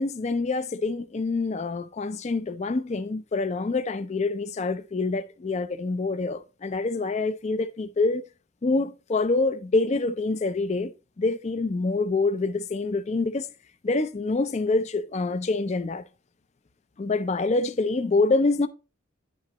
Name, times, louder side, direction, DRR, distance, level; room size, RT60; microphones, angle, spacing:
voice 1, 0.0-8.2 8.6-10.9 11.2-13.5 13.8-16.0 17.0-18.7, left 3 dB, 35° left, 0.4 m, -26 dB
10.5 x 3.8 x 2.9 m
head